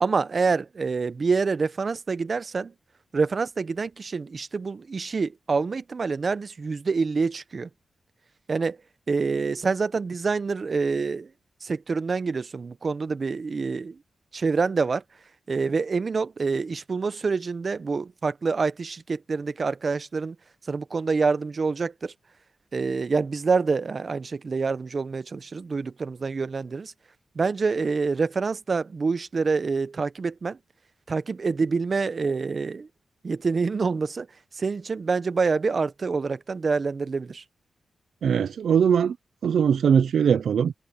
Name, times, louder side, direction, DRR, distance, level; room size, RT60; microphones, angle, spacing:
voice 1, 0.0-2.7 3.1-7.7 8.5-8.8 9.1-11.3 11.6-14.0 14.3-15.0 15.5-20.3 20.7-22.1 22.7-26.9 27.4-30.6 31.1-32.9 33.2-34.3 34.6-37.4, right 4 dB, 55° right, 0.9 m, -26 dB
voice 2, 38.2-39.2 39.4-40.7, right 7 dB, 85° right, 0.5 m, -21 dB
cardioid pair, 60°, 0 cm